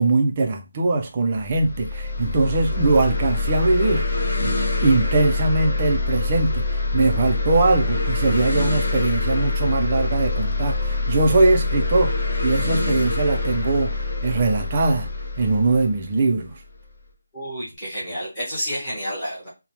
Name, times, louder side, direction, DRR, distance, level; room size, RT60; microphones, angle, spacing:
voice 1, 0.0-4.1 4.4-4.6 4.8-12.1 12.4-13.9 14.2-15.1 15.4-16.6, right 3 dB, 20° right, 0.3 m, -21 dB
sound 1, 1.3-16.8, left 3 dB, 30° left, 0.5 m, -25 dB
voice 2, 17.3-19.5, equal, 10° left, 1.0 m, -30 dB
2.6 x 2.0 x 3.0 m
figure-of-eight pair, 180°, 0 cm